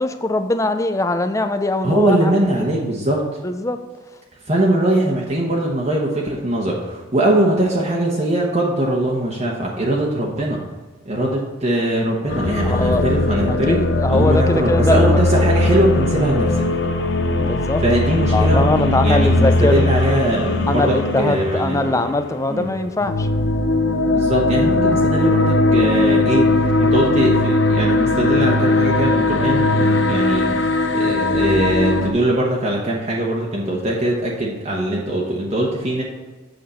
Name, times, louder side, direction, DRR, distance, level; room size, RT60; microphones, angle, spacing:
voice 1, 0.0-2.3 2.6-2.7 3.4-3.8 12.6-13.0 13.5-15.5 17.4-17.8 18.3-19.8 20.7-23.3, left 2 dB, 15° left, 9 dB, 0.5 m, -21 dB
voice 2, 1.8-3.2 4.5-10.6 11.0-13.8 14.1-16.7 17.8-21.9 22.5-22.7 24.1-26.5 26.8-30.5 30.9-36.0, right 1 dB, 35° right, -3 dB, 1.1 m, -21 dB
sound 1, 12.3-32.1, left 2 dB, 65° left, 0.7 m, -19 dB
7.9 x 6.6 x 4.2 m, 1.3 s
head